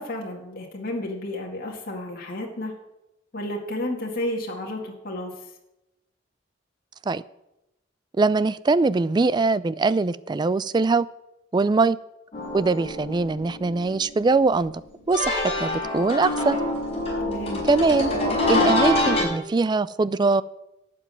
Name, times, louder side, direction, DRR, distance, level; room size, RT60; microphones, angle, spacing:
voice 1, 0.0-2.7 3.3-5.3 17.2-17.6, left 1 dB, 50° left, -1 dB, 2.0 m, -31 dB
voice 2, 8.2-11.1 11.5-12.0 12.5-14.7 15.1-16.6 17.6-18.1 18.5-20.4, right 3 dB, 25° right, 18 dB, 0.3 m, -22 dB
sound 1, 12.3-14.7 15.1-19.2, left 2 dB, 30° left, 5.6 m, -26 dB
12.0 x 6.1 x 9.1 m, 0.91 s
head